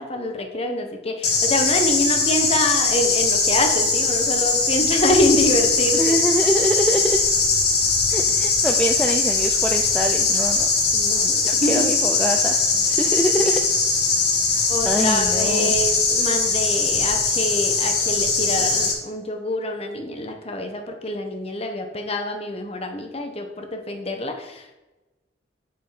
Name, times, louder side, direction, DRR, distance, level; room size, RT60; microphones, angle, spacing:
voice 1, 0.0-6.2 10.9-12.0 14.7-24.7, left 1 dB, 35° left, 5 dB, 1.2 m, -25 dB
sound 1, 1.2-18.9, left 4 dB, 60° left, 1.8 m, -20 dB
voice 2, 6.0-7.2 8.1-10.7 11.4-13.6 14.4-15.7, equal, 5° left, 2 dB, 0.5 m, -25 dB
8.4 x 7.6 x 4.3 m, 1.1 s
head